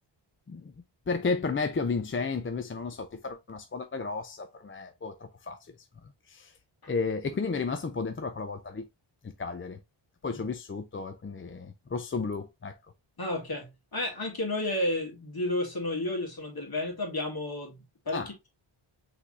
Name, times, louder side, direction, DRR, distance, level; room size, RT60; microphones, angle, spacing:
voice 1, 1.1-5.2 5.4-5.6 6.3-6.5 6.9-8.8 9.4-9.8 10.2-12.7 18.1-18.3, left 4 dB, 25° left, 0.4 m, -32 dB
voice 2, 13.2-17.8 18.1-18.5, left 1 dB, 45° left, 2.0 m, -32 dB
5.8 x 3.4 x 2.5 m
wide cardioid pair, 85°, 50 cm